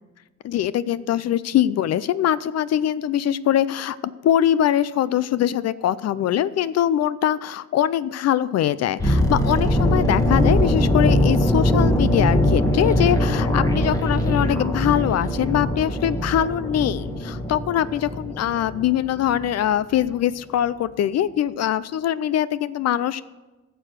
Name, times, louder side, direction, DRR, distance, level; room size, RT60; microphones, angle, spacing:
voice 1, 0.4-23.2, left 11 dB, 60° left, 17 dB, 0.4 m, -22 dB
sound 1, 9.0-19.0 19.3-19.5, left 1 dB, 10° left, 1.5 m, -21 dB
12.0 x 6.9 x 6.4 m, 1.2 s
cardioid pair, 90°, 30 cm